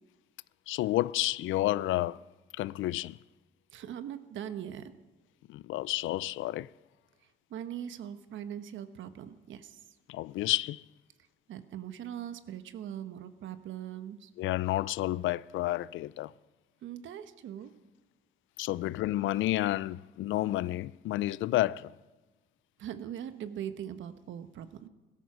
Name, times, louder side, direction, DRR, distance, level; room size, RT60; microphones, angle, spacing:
voice 1, 0.7-2.2 2.5-3.2 5.5-6.7 10.1-10.8 14.4-16.3 18.6-21.9, left 15 dB, 80° left, 0.4 m, -30 dB
voice 2, 3.7-4.9 7.5-9.8 11.5-14.3 16.8-17.7 22.8-24.9, right 10 dB, 75° right, 1.1 m, -41 dB
16.5 x 13.0 x 6.1 m
cardioid pair, 90°, 20 cm